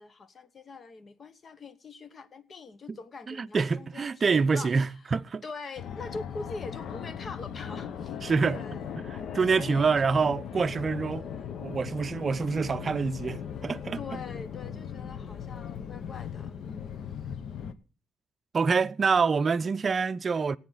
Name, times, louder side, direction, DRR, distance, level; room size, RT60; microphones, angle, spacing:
voice 1, 0.0-4.9 5.4-8.2 8.5-9.9 11.1-11.6 13.9-17.4, left 4 dB, 45° left, 1.0 m, -43 dB
voice 2, 3.3-5.4 8.2-8.6 9.1-11.3 11.6-14.0 18.5-20.6, right 5 dB, 40° right, 0.5 m, -26 dB
Fixed-wing aircraft airplane, 5.8-17.7, left 8 dB, 65° left, 0.9 m, -38 dB
19.5 x 8.6 x 4.0 m
cardioid pair, 90°, 0 cm